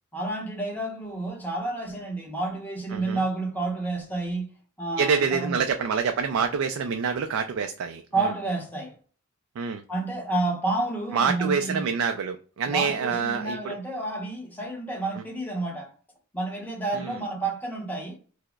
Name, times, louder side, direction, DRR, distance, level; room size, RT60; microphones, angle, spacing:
voice 1, 0.1-4.5 4.8-5.6 8.1-8.9 9.9-11.9 12.7-15.9 16.3-18.2, right 2 dB, 10° left, 0.8 m, -30 dB
voice 2, 5.0-8.3 9.6-9.8 11.1-13.8 17.0-17.1, right 6 dB, 80° right, 0.3 m, -26 dB
4.5 x 2.0 x 2.2 m
head